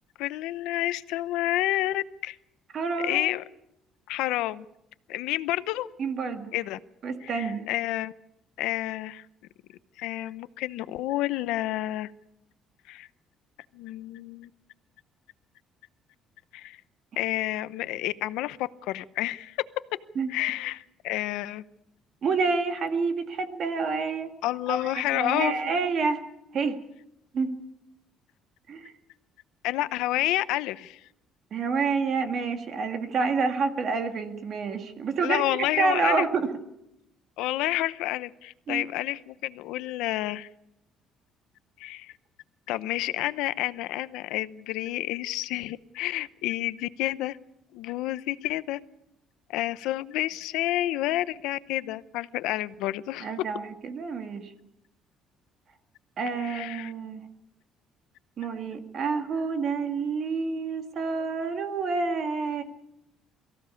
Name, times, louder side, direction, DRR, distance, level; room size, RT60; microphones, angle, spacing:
voice 1, 0.2-2.4 3.0-3.4 4.1-4.6 5.1-5.9 6.5-6.8 7.2-8.1 8.6-9.2 10.0-12.1 12.9-13.1 13.7-14.5 16.5-16.8 17.2-19.6 20.3-21.6 24.4-25.8 29.6-31.0 35.2-36.2 37.4-40.5 41.8-42.1 42.7-47.4 47.7-48.8 49.5-53.3 56.4-56.9, left 16 dB, 90° left, 15 dB, 0.8 m, -29 dB
voice 2, 2.7-3.3 6.0-6.5 7.0-7.7 20.2-20.3 22.2-24.3 24.7-26.2 26.5-26.8 27.3-27.5 28.7-28.9 31.5-35.4 35.8-36.5 38.7-38.8 53.2-54.5 56.2-57.2 58.4-62.6, right 4 dB, 40° right, 6 dB, 2.1 m, -28 dB
23.5 x 15.5 x 8.4 m, 0.84 s
cardioid pair, 165°, 0 cm